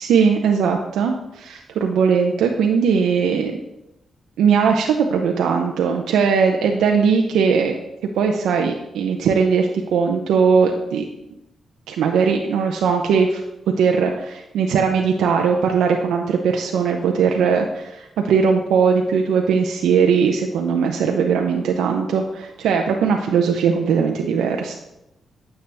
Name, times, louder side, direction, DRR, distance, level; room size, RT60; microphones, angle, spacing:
voice 1, 0.0-3.6 4.4-7.7 8.2-11.0 11.9-13.4 13.8-24.7, right 6 dB, 90° right, 2 dB, 0.6 m, -19 dB
9.4 x 6.7 x 3.4 m, 0.90 s
cardioid pair, 60°, 0 cm